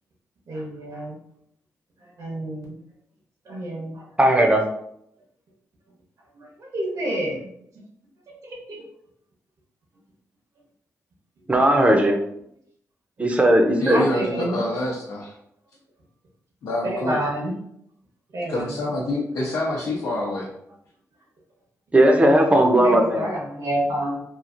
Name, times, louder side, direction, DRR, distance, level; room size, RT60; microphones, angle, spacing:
voice 1, 0.5-1.2 2.0-2.8 3.4-4.1 6.3-7.5 8.4-8.8 13.9-14.6 16.8-17.5 18.3-18.9 22.8-24.2, right 1 dB, 65° right, -2 dB, 1.1 m, -29 dB
voice 2, 4.2-4.6 11.5-12.2 13.2-14.0 21.9-23.3, right 1 dB, 20° right, 3 dB, 0.6 m, -17 dB
voice 3, 13.8-15.3 16.6-17.2 18.5-20.5, left 1 dB, 80° left, -5 dB, 0.7 m, -27 dB
3.0 x 2.5 x 2.5 m, 0.73 s
cardioid pair, 70°, 6 cm